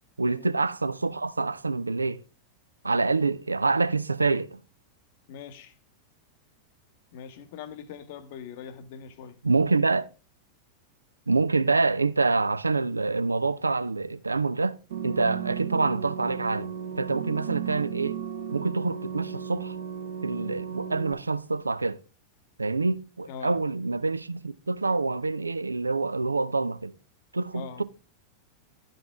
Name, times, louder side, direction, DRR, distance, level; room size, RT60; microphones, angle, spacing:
voice 1, 0.2-2.2 2.8-4.6 9.4-10.1 11.3-14.8 15.0-18.2 18.5-19.8 20.2-22.0 22.6-26.9 27.3-27.8, right 3 dB, 80° right, 0.3 m, -26 dB
voice 2, 5.3-5.7 7.1-9.4 23.3-23.6 27.5-27.8, left 7 dB, 50° left, 0.8 m, -42 dB
sound 1, 14.9-21.1, right 8 dB, 60° right, 1.0 m, -35 dB
11.5 x 5.2 x 3.4 m
figure-of-eight pair, 90°, 0 cm